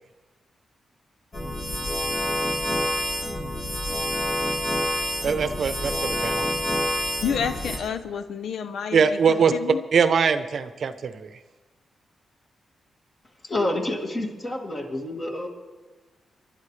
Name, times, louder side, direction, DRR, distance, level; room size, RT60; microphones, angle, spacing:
sound 1, 1.3-7.8, equal, 50° left, 4.6 m, -27 dB
voice 1, 5.2-6.4 8.9-9.5 9.9-11.3, right 6 dB, 60° right, 11 dB, 0.7 m, -22 dB
voice 2, 7.2-9.8, left 7 dB, 80° left, 10 dB, 0.6 m, -29 dB
voice 3, 13.4-15.5, left 1 dB, 35° left, 1 dB, 2.3 m, -28 dB
26.5 x 11.5 x 3.3 m, 1.3 s
cardioid pair, 100°, 0 cm